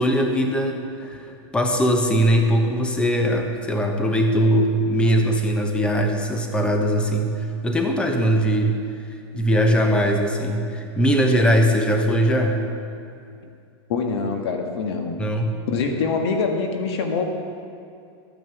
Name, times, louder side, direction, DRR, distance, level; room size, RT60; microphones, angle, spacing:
voice 1, 0.0-8.8 9.3-12.6 15.2-15.5, equal, 5° left, 3 dB, 1.0 m, -20 dB
voice 2, 13.9-15.2 15.7-17.3, left 4 dB, 65° left, 4 dB, 1.6 m, -24 dB
13.5 x 9.4 x 7.0 m, 2.5 s
supercardioid pair, 150°, 15 cm